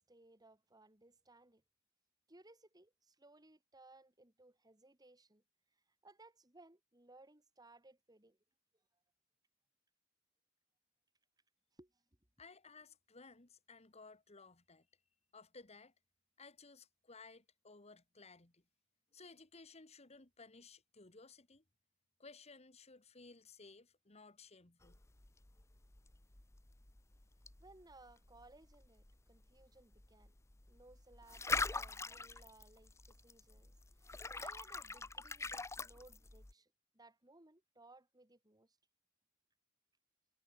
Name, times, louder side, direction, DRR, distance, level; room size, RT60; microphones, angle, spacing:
voice 1, 0.0-1.6 2.3-5.4 6.0-8.4 11.7-12.0 27.6-30.3 30.7-38.8, right 2 dB, 20° right, 2.6 m, -63 dB
voice 2, 12.4-14.9 15.3-15.9 16.4-18.6 19.1-21.6 22.2-25.0, left 4 dB, 30° left, 1.7 m, -58 dB
sound 1, 24.8-36.5, left 3 dB, 15° left, 0.6 m, -44 dB
head